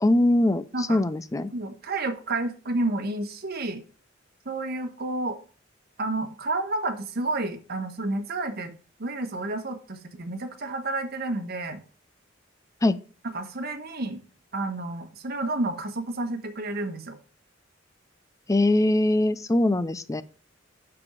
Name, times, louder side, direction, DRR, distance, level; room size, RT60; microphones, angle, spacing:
voice 1, 0.0-0.6 0.9-1.5 12.8-13.0 18.5-20.2, left 1 dB, 15° left, 14 dB, 0.5 m, -22 dB
voice 2, 1.5-3.8 4.4-5.4 6.0-8.7 9.0-11.8 13.3-14.2 14.5-17.2, right 2 dB, 55° right, 6 dB, 1.3 m, -30 dB
6.1 x 6.0 x 5.1 m, 0.38 s
head